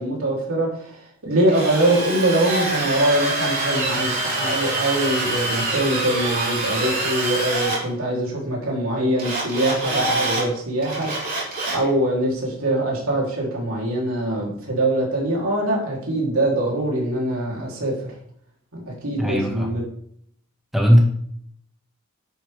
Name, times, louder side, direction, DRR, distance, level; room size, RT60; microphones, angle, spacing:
voice 1, 0.0-11.1 11.7-18.1 18.7-19.8, right 1 dB, 90° right, -3 dB, 3.6 m, -23 dB
Drill, 1.5-7.8 9.2-10.4 10.8-11.9, right 2 dB, 45° right, 4.0 m, -25 dB
voice 2, 19.2-19.7 20.7-21.0, equal, ahead, -1 dB, 1.9 m, -17 dB
10.0 x 9.4 x 3.6 m, 0.66 s
head